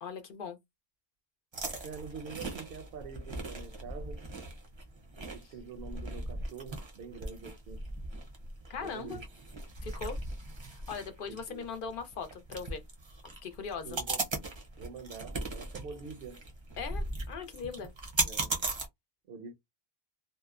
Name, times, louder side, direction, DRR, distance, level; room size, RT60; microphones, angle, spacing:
voice 1, 0.0-0.6 1.8-1.9 8.7-9.2 9.8-10.2 10.7-12.8 13.4-14.0 16.8-17.9, left 5 dB, 60° left, 0.7 m, -40 dB
sound 1, 1.5-18.9, right 2 dB, 35° right, 0.5 m, -38 dB
voice 2, 1.8-4.2 5.3-7.8 8.8-9.2 11.3-11.7 13.8-14.2 14.8-16.4 18.2-18.6 19.3-19.5, right 5 dB, 70° right, 0.8 m, -45 dB
2.7 x 2.0 x 2.4 m
omnidirectional pair, 1.1 m